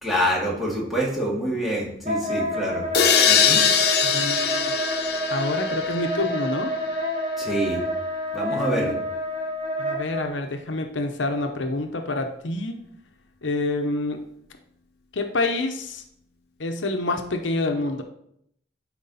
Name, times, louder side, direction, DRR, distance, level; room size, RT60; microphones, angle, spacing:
voice 1, 0.0-2.9 3.3-3.6 7.4-7.8 8.3-8.9, equal, ahead, -5 dB, 2.2 m, -26 dB
Wind instrument woodwind instrument, 2.1-10.3, equal, 35° right, 1.3 m, -28 dB
sound 1, 2.9-6.7, left 7 dB, 55° left, 0.9 m, -22 dB
voice 2, 4.0-4.7 5.3-6.7 8.5-9.0 9.8-12.8 13.4-14.2 15.1-16.0 16.6-18.0, left 2 dB, 85° left, 5 dB, 0.9 m, -27 dB
11.5 x 4.6 x 4.1 m, 0.72 s
head